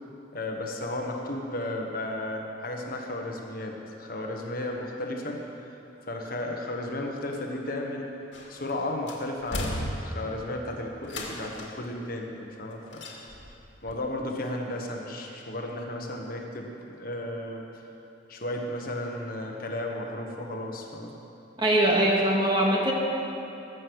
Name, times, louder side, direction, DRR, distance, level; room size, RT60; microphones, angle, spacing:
voice 1, 0.3-5.4 6.1-8.1 8.5-13.1 13.8-17.9 18.3-21.1, left 1 dB, 50° left, 1 dB, 1.3 m, -34 dB
sound 1, 8.3-8.7 9.1-10.4 11.0-11.9 12.9-13.6 13.9-14.0, left 1 dB, 65° left, 2.3 m, -35 dB
voice 2, 21.6-22.9, right 1 dB, 25° right, -3 dB, 2.1 m, -22 dB
20.0 x 8.0 x 6.3 m, 2.9 s
head